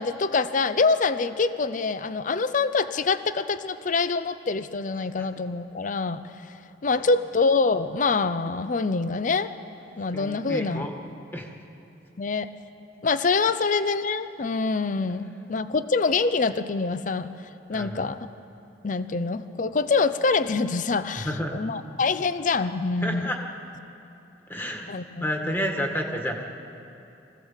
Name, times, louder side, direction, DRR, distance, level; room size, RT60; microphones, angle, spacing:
voice 1, 0.0-6.2 6.8-9.5 10.0-10.9 12.2-12.5 13.0-17.3 17.7-18.2 18.8-21.3 21.5-23.3 24.9-25.0, left 4 dB, 45° left, 13 dB, 0.6 m, -25 dB
voice 2, 10.1-10.9 11.3-11.5 17.7-18.1 21.1-21.6 23.0-23.4 24.5-26.5, equal, 10° left, 2 dB, 1.7 m, -30 dB
24.0 x 16.0 x 7.3 m, 2.9 s
head